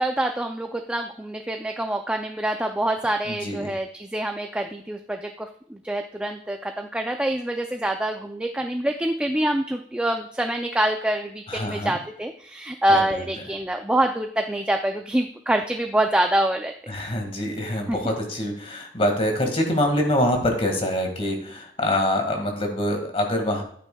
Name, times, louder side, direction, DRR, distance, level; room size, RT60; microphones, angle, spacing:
voice 1, 0.0-16.7 17.9-18.1, right 1 dB, 5° right, 4 dB, 0.4 m, -26 dB
voice 2, 3.3-3.7 11.5-12.0 12.9-13.0 16.9-23.6, left 1 dB, 35° left, 3 dB, 1.9 m, -25 dB
11.0 x 9.1 x 2.3 m, 0.62 s
head